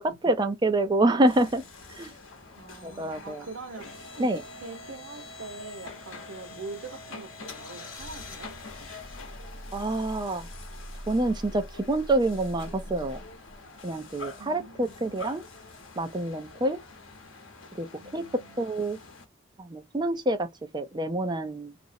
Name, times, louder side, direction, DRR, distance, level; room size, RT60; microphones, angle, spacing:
voice 1, 0.0-1.6 1.9-2.1 2.8-3.5 4.2-4.4 9.7-10.5 11.1-13.2 13.8-15.4 16.0-16.8 17.8-17.9 18.1-18.2 18.6-19.0 19.6-20.5 20.7-21.7, right 2 dB, 25° right, 0.5 m, -27 dB
sound 1, 1.3-19.3, left 2 dB, 85° left, 0.8 m, -44 dB
voice 2, 2.6-4.3 4.6-8.6 14.4-14.9 18.0-18.7, right 3 dB, 90° right, 0.8 m, -43 dB
2.5 x 2.0 x 2.5 m
head